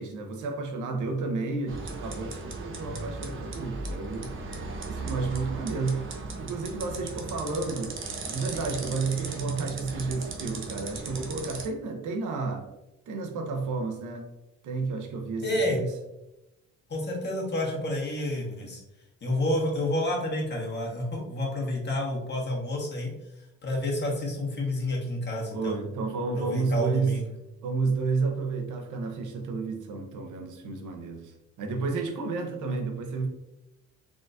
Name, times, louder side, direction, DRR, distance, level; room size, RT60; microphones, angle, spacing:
voice 1, 0.0-4.3 4.9-6.1 6.4-8.0 8.2-12.7 13.1-14.3 14.6-15.9 25.5-27.2 27.6-33.3, right 4 dB, 75° right, 4 dB, 0.8 m, -31 dB
sound 1, 1.7-11.7, right 3 dB, 40° right, 0.8 m, -37 dB
voice 2, 15.4-15.8 16.9-18.8 19.2-25.8 26.3-27.2, left 1 dB, 35° left, -2 dB, 1.5 m, -29 dB
3.8 x 3.6 x 2.5 m, 0.92 s
cardioid pair, 90°, 30 cm